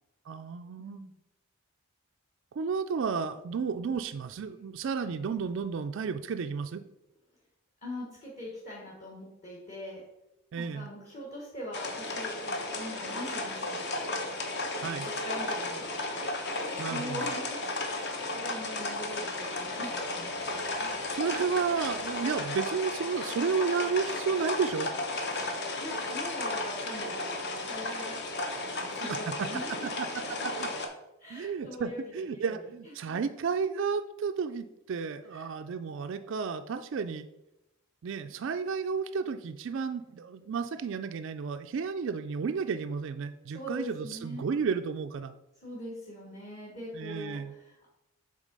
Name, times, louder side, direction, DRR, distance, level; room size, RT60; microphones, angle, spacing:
voice 1, 0.3-1.0 2.6-6.8 10.5-10.9 14.8-15.1 16.8-17.3 20.7-24.9 29.4-29.5 30.0-30.1 30.4-30.7 31.3-37.3 38.0-45.3 46.9-47.5, right 5 dB, 55° right, 7 dB, 0.3 m, -32 dB
voice 2, 0.8-1.1 7.8-10.0 10.5-14.1 14.8-16.3 16.7-17.6 17.9-20.6 25.3-28.3 28.6-29.9 30.3-30.5 31.2-32.0 32.3-32.5 33.0-33.2 35.3-35.5 43.5-44.4 45.6-47.9, equal, 30° left, -5 dB, 1.3 m, -42 dB
sound 1, 11.7-30.9, left 2 dB, 50° left, 0.9 m, -34 dB
7.3 x 3.8 x 5.2 m, 0.89 s
head